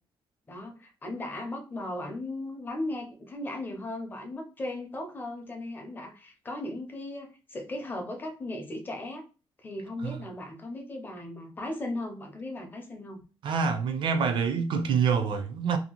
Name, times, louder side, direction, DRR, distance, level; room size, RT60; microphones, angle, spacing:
voice 1, 0.5-9.2 9.6-13.2, left 1 dB, 20° left, 0.5 m, -37 dB
voice 2, 13.4-15.8, right 6 dB, 60° right, 0.5 m, -26 dB
2.7 x 2.3 x 2.9 m
wide cardioid pair, 175°, 9 cm